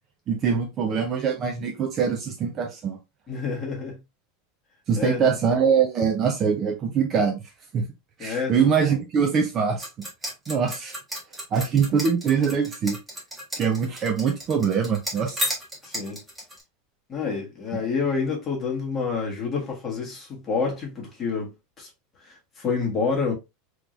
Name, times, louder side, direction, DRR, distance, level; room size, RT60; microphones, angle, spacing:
voice 1, 0.3-3.0 4.9-7.4 7.7-7.9 8.2-10.1 10.5-10.9 11.5-13.0 13.6-15.6 17.7-17.9, right 6 dB, 30° right, 0.6 m, -23 dB
voice 2, 3.3-4.0 5.0-5.4 8.2-8.7 15.8-16.2 17.1-21.9 22.2-23.3, left 5 dB, 20° left, 1.5 m, -28 dB
sound 1, 9.8-16.6, equal, 5° right, 1.4 m, -33 dB
3.6 x 3.1 x 2.5 m
supercardioid pair, 155°, 0 cm